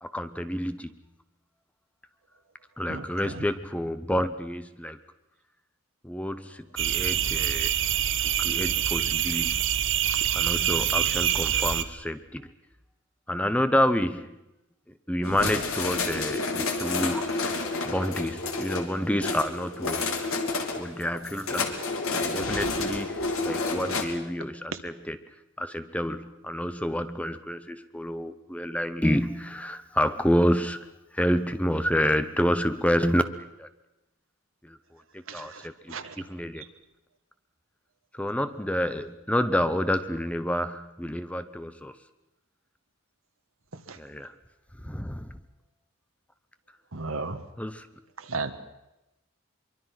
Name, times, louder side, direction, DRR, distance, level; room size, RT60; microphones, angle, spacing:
voice 1, 0.0-0.9 2.8-5.0 6.0-7.7 8.4-9.6 10.3-12.5 13.3-14.3 15.1-17.3 17.8-20.2 20.8-21.8 22.1-23.2 23.4-25.2 25.6-30.8 31.1-33.7 34.7-34.8 35.3-36.6 38.2-41.9 44.0-44.3 44.8-45.3 47.6-47.9, equal, 5° left, 11 dB, 0.8 m, -28 dB
voice 2, 2.9-3.5 24.7-24.8 35.3-36.2 36.6-36.7 43.7-44.0 46.9-47.4 48.2-48.5, right 3 dB, 75° right, 9 dB, 1.6 m, -35 dB
sound 1, 6.8-11.8, right 10 dB, 60° right, 1.1 m, -25 dB
sound 2, 15.2-24.0, left 3 dB, 85° left, 2.9 m, -30 dB
24.5 x 23.5 x 5.9 m, 0.95 s
head